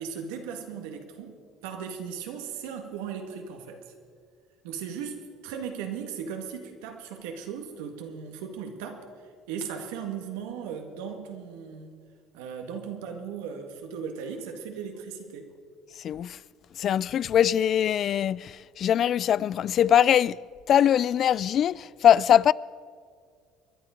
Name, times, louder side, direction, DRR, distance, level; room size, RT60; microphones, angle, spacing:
voice 1, 0.0-1.4 1.6-3.8 4.6-9.0 9.5-11.9 12.3-15.5, right 7 dB, 85° right, 1.8 m, -37 dB
voice 2, 16.0-16.4 16.8-20.4 20.7-22.5, left 10 dB, 50° left, 0.3 m, -22 dB
24.5 x 11.0 x 5.1 m
supercardioid pair, 85°, 0 cm